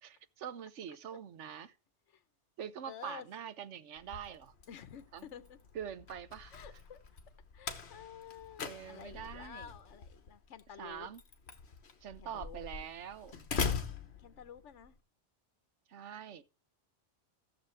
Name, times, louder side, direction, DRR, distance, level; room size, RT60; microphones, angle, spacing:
voice 1, 0.0-1.8 2.6-4.5 5.1-5.3 5.7-6.5 8.6-9.7 10.8-11.2 12.0-13.3 15.9-16.4, right 8 dB, 75° right, 1.2 m, -44 dB
voice 2, 2.8-3.3 4.7-5.6 6.5-7.0 7.5-11.1 12.2-12.6 14.2-14.9, left 8 dB, 80° left, 1.2 m, -50 dB
Slam, 4.0-14.9, left 5 dB, 60° left, 1.5 m, -42 dB
16.0 x 7.2 x 3.2 m
omnidirectional pair, 1.2 m